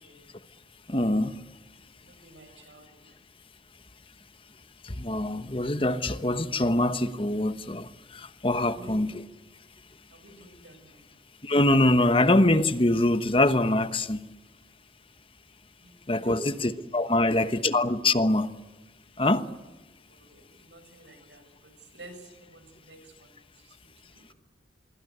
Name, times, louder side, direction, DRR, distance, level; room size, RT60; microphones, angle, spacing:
voice 1, 0.9-1.3 4.8-9.2 11.4-14.3 16.1-18.5 19.2-19.5, left 1 dB, 30° left, 1.1 m, -24 dB
voice 2, 2.0-3.0 8.6-9.0 10.1-11.1 15.8-16.6 17.2-17.3 20.1-23.4 23.6-23.9, right 1 dB, 85° right, 7.1 m, -48 dB
26.5 x 23.0 x 8.1 m
head